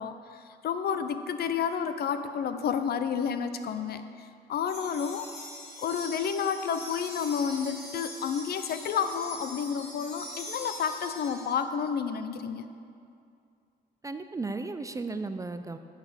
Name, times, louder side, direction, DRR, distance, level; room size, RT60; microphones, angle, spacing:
voice 1, 0.0-5.3 5.8-12.6, left 7 dB, 60° left, 10 dB, 0.5 m, -30 dB
sound 1, 4.7-11.5, left 1 dB, 35° left, 2.3 m, -43 dB
voice 2, 14.0-15.8, right 3 dB, 20° right, 9 dB, 0.3 m, -35 dB
10.5 x 4.1 x 6.2 m, 2.4 s
cardioid pair, 85°, 18 cm